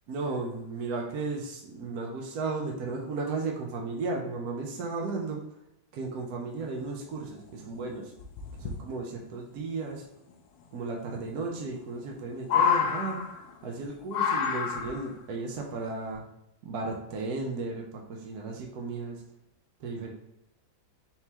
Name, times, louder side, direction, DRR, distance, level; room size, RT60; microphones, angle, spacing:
voice 1, 0.1-5.4 5.9-8.1 8.6-10.1 10.7-13.2 13.6-16.2 16.6-19.2 19.8-20.1, right 3 dB, 65° right, -1 dB, 1.1 m, -34 dB
sound 1, 7.1-7.2 7.5-7.6 8.2-8.7 10.3-10.4 11.6-12.1 12.4-13.6 14.1-15.1 16.1-16.2, left 7 dB, 90° left, 1.3 m, -28 dB
4.3 x 3.7 x 2.9 m, 0.82 s
omnidirectional pair, 2.0 m